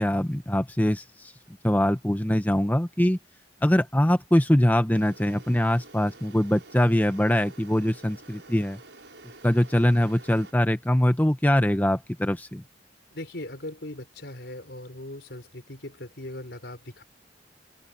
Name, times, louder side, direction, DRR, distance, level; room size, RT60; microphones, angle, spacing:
voice 1, 0.0-1.3 1.6-3.2 3.6-8.8 9.4-12.6, left 1 dB, 10° left, 0.8 m, -23 dB
sound 1, 4.9-10.5, right 2 dB, 85° right, 6.1 m, -49 dB
voice 2, 13.1-17.0, left 1 dB, 70° left, 4.6 m, -39 dB
open air
head